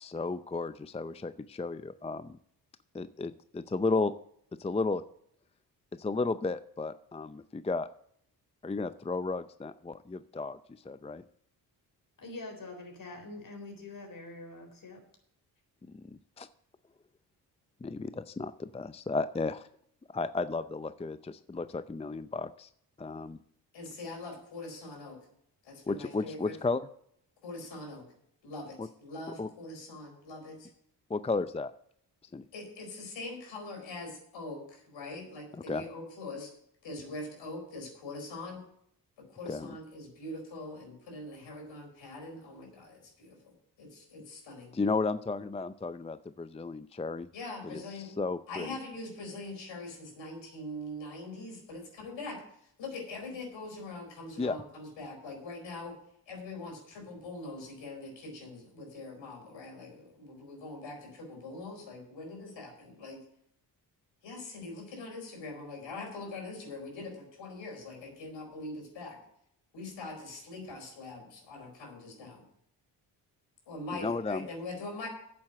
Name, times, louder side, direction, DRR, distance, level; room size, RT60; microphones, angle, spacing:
voice 1, 0.0-2.4 2.9-4.1 4.6-5.0 5.9-7.9 8.6-10.6 10.8-11.2 15.9-16.5 17.8-19.7 20.1-22.7 23.0-23.4 25.9-26.9 28.8-28.9 29.4-29.5 31.1-31.7 32.3-32.4 35.7-35.8 39.5-39.8 44.7-47.3 47.6-48.7 54.4-54.6 73.9-74.5, left 3 dB, 15° left, 13 dB, 0.5 m, -33 dB
voice 2, 12.2-15.0, left 2 dB, 45° left, 4 dB, 4.1 m, -44 dB
voice 3, 23.7-25.2 25.6-26.6 27.4-28.0 28.4-30.7 32.5-36.5 36.8-38.6 39.3-44.7 47.3-48.1 48.5-56.0 56.3-63.2 64.2-69.2 69.7-72.4 73.7-75.1, left 2 dB, 75° left, 2 dB, 4.4 m, -43 dB
8.6 x 7.6 x 7.8 m, 0.69 s
supercardioid pair, 50°, 45 cm